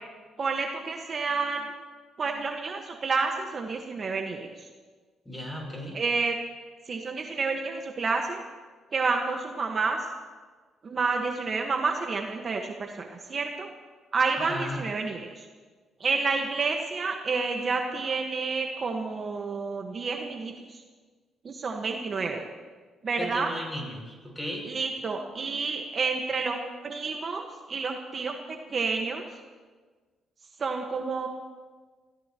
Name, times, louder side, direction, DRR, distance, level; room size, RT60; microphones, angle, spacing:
voice 1, 0.4-1.7 2.2-4.7 5.9-6.3 6.9-8.4 8.9-10.0 10.8-13.7 14.1-15.5 16.0-20.8 21.4-22.5 23.0-23.5 24.6-29.2 30.6-31.3, right 4 dB, 45° right, 2 dB, 1.5 m, -29 dB
voice 2, 5.3-6.0 14.4-14.9 23.2-24.7, equal, 10° left, -1 dB, 7.0 m, -35 dB
27.0 x 17.0 x 3.1 m, 1.4 s
cardioid pair, 90°, 0 cm